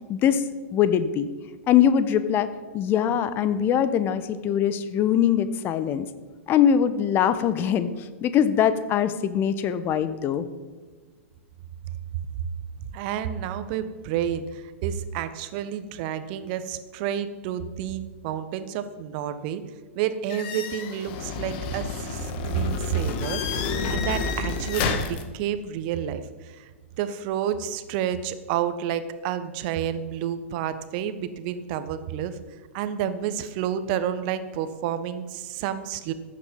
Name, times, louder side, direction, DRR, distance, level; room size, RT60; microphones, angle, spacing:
voice 1, 0.1-0.4 0.7-1.3 1.7-2.5 2.7-6.1 6.5-7.9 8.2-10.5, left 9 dB, 30° left, 12 dB, 1.1 m, -22 dB
voice 2, 12.9-19.6 19.9-26.7 27.0-32.4 32.7-36.1, right 9 dB, 45° right, 11 dB, 1.3 m, -30 dB
sound 1, 20.3-25.2, left 5 dB, 45° left, 1.9 m, -29 dB
15.0 x 10.5 x 5.4 m, 1.4 s
figure-of-eight pair, 105°, 7 cm